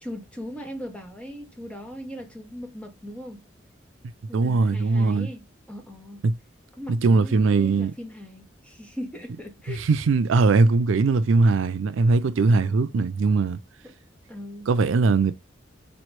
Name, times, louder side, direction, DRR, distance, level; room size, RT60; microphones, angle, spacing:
voice 1, 0.0-3.4 4.3-6.2 6.7-9.9 12.5-12.7 13.8-13.9 14.3-14.7, equal, 5° left, 1.0 m, -39 dB
voice 2, 4.3-5.3 6.2-6.3 7.0-7.9 9.9-13.6 14.7-15.3, right 3 dB, 80° right, 0.4 m, -20 dB
4.2 x 3.1 x 3.1 m
head